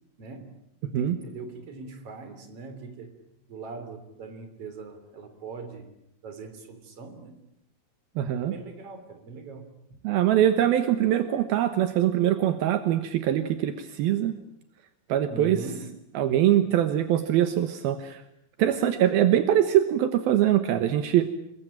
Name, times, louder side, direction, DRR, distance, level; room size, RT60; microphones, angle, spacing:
voice 1, 0.2-0.5 0.8-3.1 3.5-5.9 6.2-7.3 8.4-9.7 15.3-15.9, right 3 dB, 40° right, 8 dB, 4.1 m, -41 dB
voice 2, 8.2-8.5 10.0-14.4 15.1-15.6 16.1-18.2 18.6-21.3, right 11 dB, 75° right, 9 dB, 3.0 m, -23 dB
28.5 x 22.0 x 9.0 m, 0.78 s
omnidirectional pair, 4.4 m